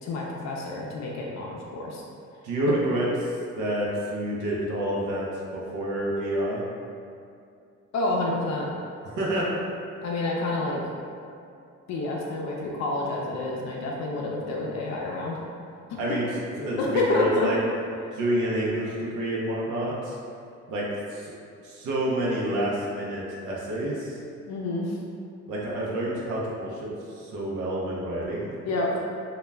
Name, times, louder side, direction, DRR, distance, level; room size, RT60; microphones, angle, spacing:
voice 1, 0.0-2.0 7.9-8.7 10.0-10.8 11.9-15.4 15.9-16.0 16.8-17.5 24.5-25.0 28.6-29.0, left 2 dB, 65° left, -2 dB, 0.4 m, -28 dB
voice 2, 2.4-6.6 9.0-9.5 16.0-17.6 18.1-20.2 20.7-21.3 21.6-24.2 25.5-28.5, right 1 dB, 80° right, -5 dB, 0.6 m, -28 dB
2.2 x 2.1 x 3.3 m, 2.4 s
cardioid pair, 90°, 30 cm